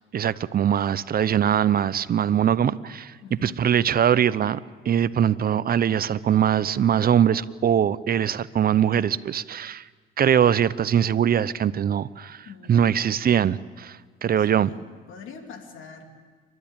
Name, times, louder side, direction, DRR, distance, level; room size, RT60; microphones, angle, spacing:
voice 1, 0.1-3.1 3.4-4.6 4.9-9.8 10.2-12.4 12.7-14.7, right 9 dB, 45° right, 17 dB, 0.7 m, -22 dB
voice 2, 3.2-3.6 12.4-13.1 14.4-16.1, left 5 dB, 75° left, 4 dB, 3.0 m, -43 dB
28.5 x 12.5 x 8.9 m, 1.5 s
cardioid pair, 85°, 21 cm